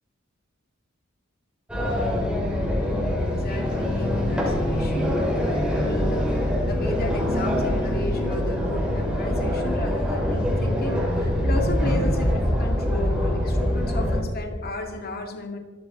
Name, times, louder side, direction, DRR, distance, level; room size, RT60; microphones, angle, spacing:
sound 1, 1.7-14.2, left 1 dB, 5° right, 4.2 m, -24 dB
voice 1, 2.7-15.6, left 2 dB, 50° left, 3 dB, 2.2 m, -34 dB
26.0 x 13.5 x 4.1 m, 1.5 s
head